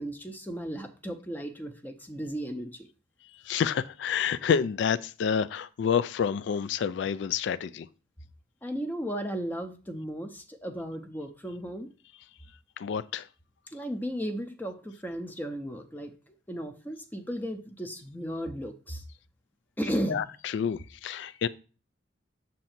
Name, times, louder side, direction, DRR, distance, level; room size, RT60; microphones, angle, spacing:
voice 1, 0.0-2.9 8.6-11.9 13.7-16.1 16.5-19.0 19.8-20.2, equal, 10° left, 0.6 m, -35 dB
voice 2, 3.5-7.9 12.8-13.3 20.1-21.5, left 7 dB, 60° left, 0.3 m, -28 dB
7.5 x 2.7 x 5.7 m
head